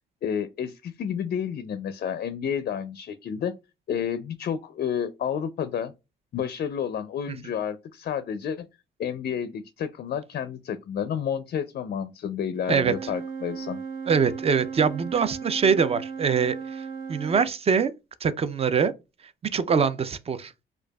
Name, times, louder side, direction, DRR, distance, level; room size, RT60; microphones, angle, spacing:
voice 1, 0.2-3.5 3.9-5.9 6.3-8.7 9.0-13.8, left 8 dB, 50° left, 0.4 m, -30 dB
Wind instrument woodwind instrument, 12.6-17.5, right 6 dB, 80° right, 0.9 m, -36 dB
voice 2, 14.1-17.9 18.2-18.9 19.5-20.5, right 6 dB, 30° right, 0.4 m, -23 dB
4.5 x 2.3 x 2.2 m
cardioid pair, 90°, 20 cm